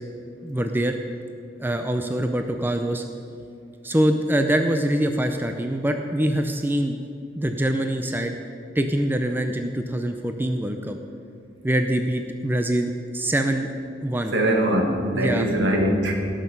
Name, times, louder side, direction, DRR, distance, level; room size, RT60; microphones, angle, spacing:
voice 1, 0.4-1.0 1.6-3.0 3.8-7.0 7.4-8.4 8.8-11.0 11.6-13.7 14.0-14.3 15.1-15.5, right 1 dB, 10° right, 5 dB, 0.5 m, -24 dB
voice 2, 14.3-16.1, right 1 dB, 75° right, 1 dB, 1.8 m, -22 dB
18.0 x 6.4 x 5.3 m, 2.5 s
head